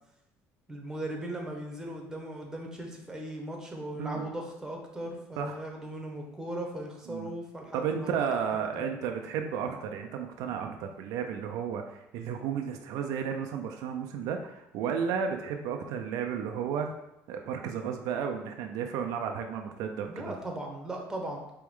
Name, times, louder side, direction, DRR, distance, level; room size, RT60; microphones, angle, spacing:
voice 1, 0.7-8.4 8.8-9.0 20.1-21.4, right 1 dB, 10° right, 0 dB, 1.1 m, -38 dB
voice 2, 7.7-16.9 17.3-20.3, right 7 dB, 75° right, 4 dB, 0.5 m, -33 dB
4.6 x 3.0 x 3.6 m, 0.86 s
cardioid pair, 100°, 6 cm